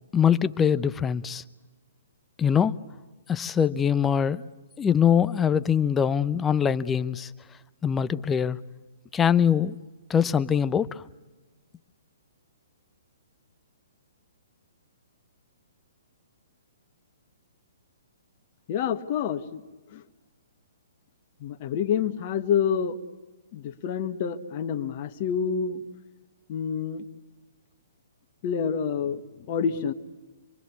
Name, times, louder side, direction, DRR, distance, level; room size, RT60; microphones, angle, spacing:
voice 1, 0.1-1.4 2.4-2.8 3.3-4.5 4.8-7.3 7.8-8.6 9.1-9.8 10.1-11.0, left 8 dB, 15° left, 15 dB, 0.8 m, -23 dB
voice 2, 18.7-19.6 19.9-20.0 21.4-23.0 23.5-25.8 26.5-27.1 28.4-29.9, left 7 dB, 40° left, 6 dB, 1.5 m, -28 dB
26.5 x 23.5 x 8.3 m, 1.2 s
figure-of-eight pair, 125°, 0 cm